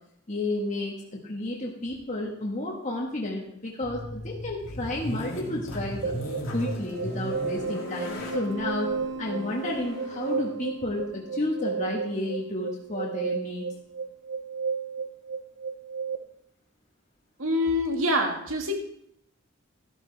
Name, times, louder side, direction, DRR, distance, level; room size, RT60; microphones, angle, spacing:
voice 1, 0.3-6.1 6.5-8.9 9.2-13.6, left 2 dB, 35° left, -3 dB, 1.7 m, -31 dB
sound 1, 3.8-11.6, left 1 dB, 80° left, 2.8 m, -37 dB
sound 2, 6.0-16.2, right 5 dB, 55° right, 0.7 m, -33 dB
voice 2, 17.4-18.8, left 1 dB, 80° right, 3 dB, 2.1 m, -25 dB
13.5 x 12.0 x 3.5 m, 0.72 s
head